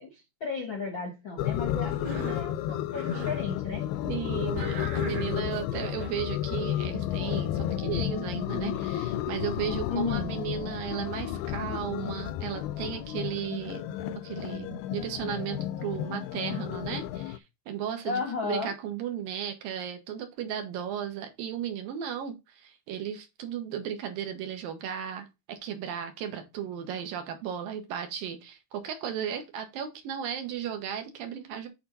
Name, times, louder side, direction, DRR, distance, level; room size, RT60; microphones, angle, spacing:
voice 1, 0.0-3.9 9.9-10.3 18.0-18.7, left 4 dB, 55° left, 1.3 m, -34 dB
sound 1, 1.4-17.4, left 11 dB, 85° left, 2.5 m, -32 dB
Cough, 1.9-2.5 2.9-3.4 4.5-6.2, right 5 dB, 50° right, 1.5 m, -41 dB
voice 2, 4.0-13.8 14.2-31.7, right 9 dB, 70° right, 2.8 m, -35 dB
8.4 x 4.4 x 4.0 m
omnidirectional pair, 4.5 m